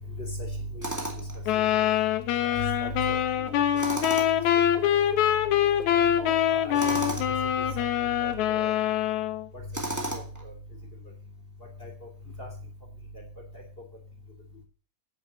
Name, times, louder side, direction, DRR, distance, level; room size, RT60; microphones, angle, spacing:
voice 1, 0.2-1.3 2.4-3.2 3.5-3.8 4.5-4.8 5.9-7.2 7.6-8.7 9.5-10.5 11.8-12.1 12.4-12.5, left 1 dB, 20° left, 1 dB, 2.9 m, -37 dB
Tools, 0.8-1.4 3.7-4.5 6.7-7.3 9.7-10.4, right 2 dB, 10° right, 1.3 m, -33 dB
sound 1, 1.5-9.5, left 10 dB, 70° left, 2.2 m, -24 dB
10.0 x 6.6 x 8.1 m, 0.39 s
omnidirectional pair, 3.6 m